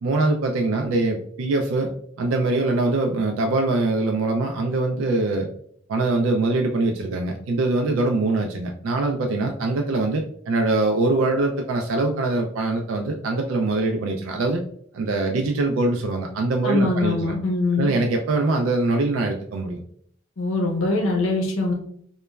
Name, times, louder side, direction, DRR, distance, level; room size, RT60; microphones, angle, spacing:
voice 1, 0.0-5.5 5.9-14.6 14.9-17.3 17.8-19.8, right 2 dB, 80° right, 3 dB, 0.3 m, -23 dB
voice 2, 16.6-17.9 20.4-21.7, left 2 dB, 80° left, 0 dB, 0.6 m, -22 dB
2.9 x 2.1 x 2.2 m, 0.65 s
head